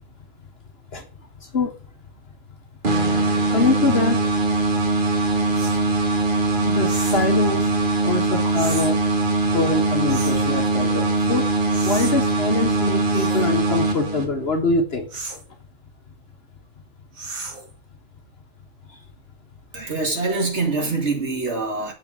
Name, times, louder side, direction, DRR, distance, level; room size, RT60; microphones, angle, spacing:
voice 1, 1.4-1.8 3.5-4.2 5.3-5.4 5.9-6.0 6.6-7.7 8.0-9.0 9.5-11.5 11.8-15.1 18.9-19.0, left 3 dB, 45° left, 1.3 m, -24 dB
sound 1, 2.8-14.6, right 2 dB, 35° right, 1.6 m, -21 dB
sound 2, 5.5-5.8 6.8-7.3 8.5-8.9 10.1-10.5 11.7-12.1 13.1-13.5 15.1-15.4 17.2-17.7, right 3 dB, 70° right, 2.3 m, -34 dB
voice 2, 19.7-21.9, right 3 dB, 50° right, 2.1 m, -24 dB
7.4 x 4.6 x 6.1 m
omnidirectional pair, 1.5 m